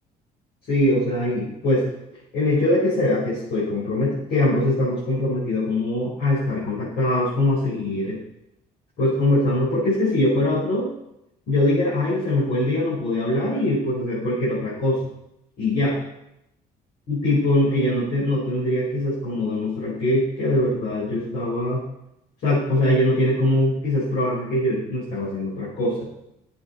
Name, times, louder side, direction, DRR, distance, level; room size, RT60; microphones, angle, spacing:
voice 1, 0.7-1.9 2.3-8.2 9.0-10.9 11.5-15.0 15.6-16.0 17.1-21.8 22.4-26.0, left 1 dB, 70° left, -10 dB, 4.5 m, -22 dB
10.0 x 7.9 x 4.2 m, 0.84 s
cardioid pair, 110°, 17 cm